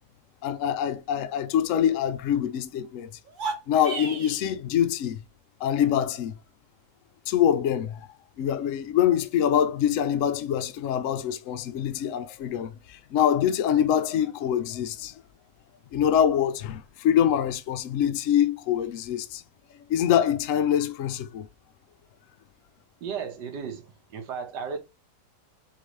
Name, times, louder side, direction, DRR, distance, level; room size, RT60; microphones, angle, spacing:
voice 1, 0.4-3.1 3.7-5.2 5.6-6.3 7.3-8.1 8.4-15.2 15.9-19.4 19.9-21.5, left 9 dB, 70° left, 0.8 m, -25 dB
sound 1, 3.2-4.4, right 4 dB, 40° right, 0.7 m, -33 dB
voice 2, 23.0-24.8, right 6 dB, 80° right, 1.6 m, -35 dB
3.8 x 3.8 x 3.2 m
omnidirectional pair, 1.8 m